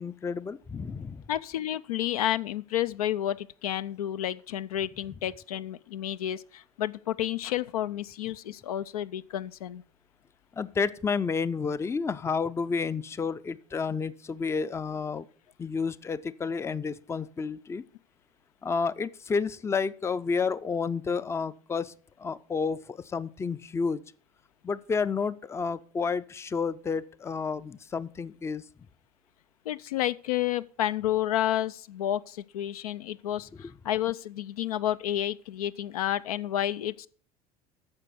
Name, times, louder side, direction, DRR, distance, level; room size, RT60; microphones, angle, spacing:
voice 1, 0.0-1.3 10.6-15.3 15.6-17.8 18.6-21.9 22.2-24.0 24.6-28.6, left 5 dB, 15° left, 0.4 m, -30 dB
voice 2, 1.3-9.8 29.7-37.1, left 12 dB, 75° left, 0.4 m, -30 dB
9.7 x 6.6 x 6.1 m
figure-of-eight pair, 70°, 19 cm